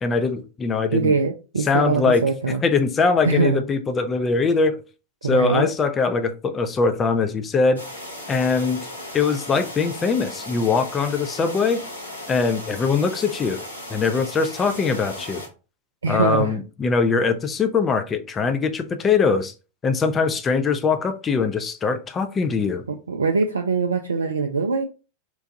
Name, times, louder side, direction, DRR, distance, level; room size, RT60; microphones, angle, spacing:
voice 1, 0.0-1.1 1.6-2.3 2.6-4.8 5.2-7.8 8.3-8.9 9.1-11.8 12.3-13.6 13.9-15.4 16.1-19.5 19.8-22.8, left 4 dB, 20° left, 0.5 m, -22 dB
voice 2, 0.9-2.6 3.2-3.6 5.2-5.7 16.0-16.6 22.9-24.8, right 4 dB, 75° right, 0.3 m, -22 dB
sound 1, 7.8-15.5, left 1 dB, 85° left, 1.0 m, -36 dB
4.5 x 2.2 x 2.6 m
figure-of-eight pair, 90°, 0 cm